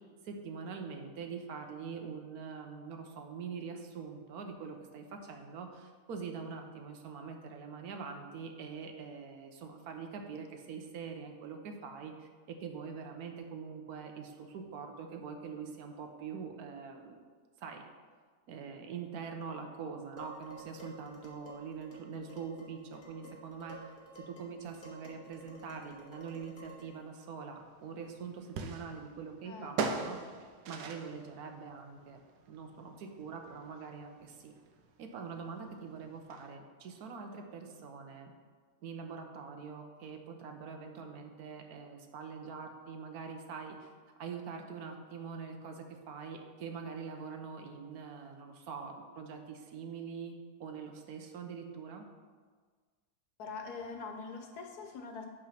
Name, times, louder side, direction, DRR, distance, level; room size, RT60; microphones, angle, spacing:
voice 1, 0.2-17.2 17.6-17.8 18.5-30.2 30.7-32.2 32.5-34.5 35.0-38.3 38.8-43.9 44.2-52.0, right 5 dB, 70° right, 4 dB, 1.2 m, -44 dB
Dishes pots and pans, 20.2-27.0, right 1 dB, 30° left, 1.4 m, -53 dB
sound 1, 27.6-36.5, right 4 dB, 90° right, 1.3 m, -42 dB
voice 2, 29.4-30.1 53.4-55.3, left 4 dB, 75° left, 4 dB, 1.4 m, -44 dB
8.7 x 3.9 x 5.7 m, 1.6 s
omnidirectional pair, 1.7 m